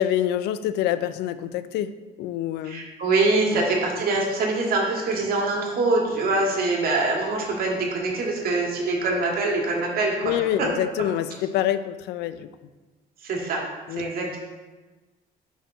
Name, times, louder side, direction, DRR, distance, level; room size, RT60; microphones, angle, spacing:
voice 1, 0.0-1.9 2.2-2.9 3.5-3.6 10.2-12.5 13.9-14.1, left 11 dB, 80° left, 13 dB, 0.4 m, -26 dB
voice 2, 2.6-10.4 13.2-13.6 14.0-14.4, right 3 dB, 60° right, -1 dB, 1.9 m, -24 dB
5.5 x 4.4 x 6.2 m, 1.2 s
cardioid pair, 110°, 17 cm